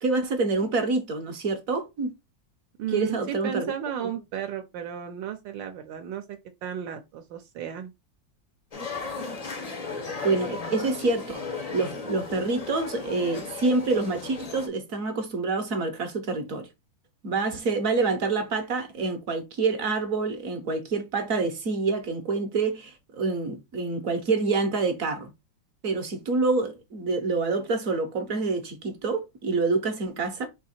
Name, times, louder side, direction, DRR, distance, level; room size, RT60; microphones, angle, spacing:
voice 1, 0.0-2.1 2.9-3.7 4.0-4.1 10.2-11.4 11.7-16.7 17.2-25.3 25.8-30.5, right 3 dB, 55° right, 1.0 m, -27 dB
voice 2, 2.8-7.9, right 9 dB, 80° right, 1.3 m, -34 dB
sound 1, 8.7-14.7, left 4 dB, 70° left, 0.3 m, -35 dB
4.5 x 2.8 x 4.2 m
omnidirectional pair, 2.1 m